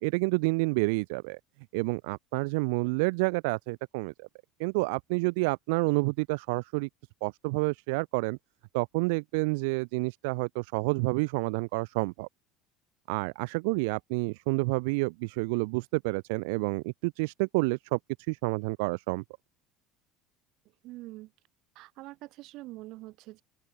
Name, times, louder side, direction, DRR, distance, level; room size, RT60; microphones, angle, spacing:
voice 1, 0.0-1.4 1.7-4.3 4.6-6.9 7.2-8.4 8.7-12.3 13.1-18.0 18.3-19.2, right 29 dB, 80° right, 0.9 m, -29 dB
voice 2, 20.8-21.3 21.8-23.4, right 19 dB, 65° right, 7.2 m, -44 dB
open air
supercardioid pair, 100°, 0 cm